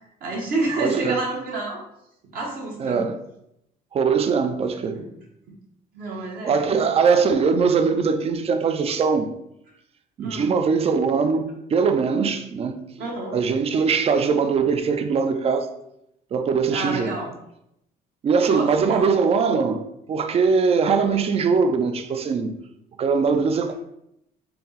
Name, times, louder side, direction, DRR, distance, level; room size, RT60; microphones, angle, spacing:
voice 1, 0.2-1.8 2.3-3.0 4.9-5.1 5.9-6.6 10.2-10.5 13.0-13.3 16.7-17.3 18.4-19.1, right 2 dB, 60° right, 1.0 m, -28 dB
voice 2, 0.8-1.2 2.8-3.2 3.9-5.0 6.4-9.3 10.2-12.8 13.3-15.7 16.3-17.1 18.2-19.8 20.1-22.5 23.0-23.7, right 5 dB, 35° right, 0.4 m, -21 dB
4.2 x 2.0 x 3.9 m
cardioid pair, 110°, 17 cm